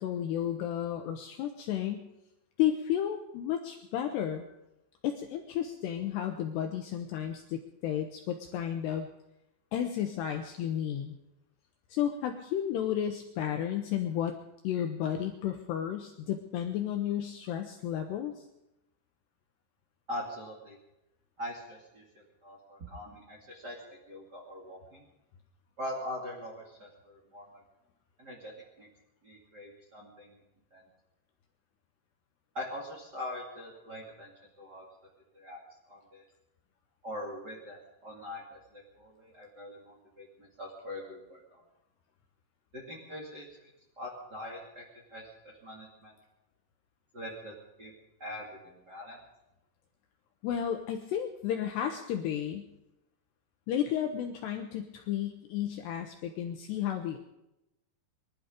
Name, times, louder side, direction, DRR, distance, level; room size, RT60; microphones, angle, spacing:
voice 1, 0.0-2.0 2.6-4.4 5.0-9.1 9.7-11.1 11.9-14.3 14.6-18.5 50.4-52.7 53.7-57.2, left 10 dB, 80° left, 5 dB, 2.5 m, -32 dB
voice 2, 20.1-20.8 21.4-25.0 25.8-27.6 28.2-28.9 29.2-30.3 30.7-30.8 32.5-34.3 34.6-34.9 35.3-35.6 35.9-36.2 37.0-41.6 42.7-43.7 43.9-44.8 45.1-46.1 47.1-47.9 48.2-49.2, left 1 dB, 35° right, -3 dB, 1.6 m, -42 dB
22.5 x 12.0 x 5.1 m, 0.90 s
omnidirectional pair, 5.9 m